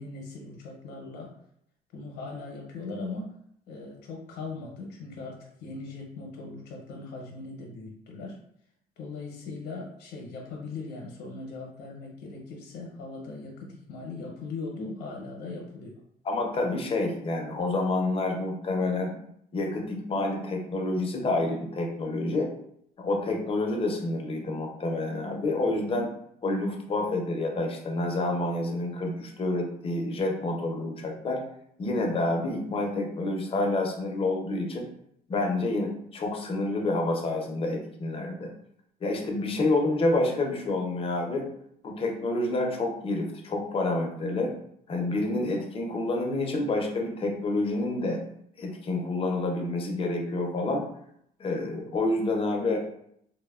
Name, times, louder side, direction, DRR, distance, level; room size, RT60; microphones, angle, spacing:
voice 1, 0.0-1.4 1.9-3.3 3.7-8.4 9.0-16.0, left 3 dB, 75° left, -1 dB, 0.7 m, -39 dB
voice 2, 16.2-19.2 19.5-22.5 23.0-26.1 26.4-31.4 31.8-34.9 35.3-38.5 39.0-41.5 41.8-44.5 44.9-48.2 48.6-50.9 51.4-52.8, left 2 dB, 35° left, 2 dB, 0.5 m, -28 dB
2.9 x 2.1 x 2.3 m, 0.72 s
cardioid pair, 110°, 17 cm